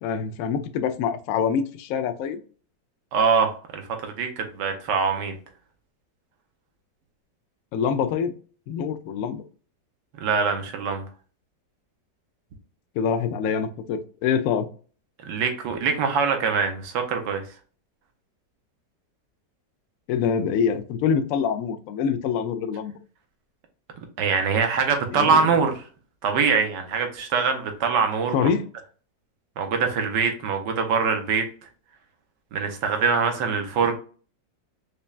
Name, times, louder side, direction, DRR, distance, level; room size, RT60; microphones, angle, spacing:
voice 1, 0.0-2.4 7.7-8.3 8.7-9.5 13.0-14.7 20.1-22.9 25.1-25.5 28.3-28.7, left 7 dB, 75° left, 8 dB, 0.7 m, -25 dB
voice 2, 3.1-5.4 10.2-11.0 15.3-17.4 24.2-25.7 26.2-28.5 29.6-31.4 32.5-34.0, right 5 dB, 75° right, 5 dB, 1.4 m, -23 dB
5.2 x 2.2 x 2.3 m, 0.40 s
omnidirectional pair, 1.9 m